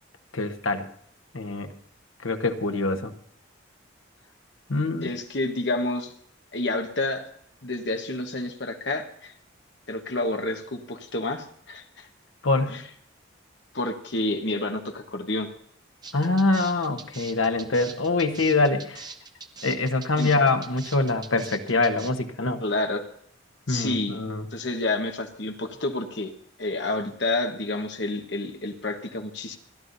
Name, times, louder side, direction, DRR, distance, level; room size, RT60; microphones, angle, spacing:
voice 1, 0.3-0.9 1.3-1.7 2.2-3.1 4.7-5.1 12.4-12.7 16.1-19.1 19.6-22.6 23.7-24.4, left 3 dB, 85° left, 6 dB, 1.2 m, -24 dB
voice 2, 5.0-6.1 6.5-7.3 7.6-9.3 9.9-12.1 12.7-12.8 13.7-15.5 20.2-20.3 22.6-23.0 23.7-24.2 24.5-26.3 26.6-29.6, left 2 dB, 60° left, 5 dB, 1.3 m, -29 dB
sound 1, 16.0-22.1, right 5 dB, 20° right, 0.8 m, -42 dB
29.0 x 11.5 x 2.7 m, 0.64 s
head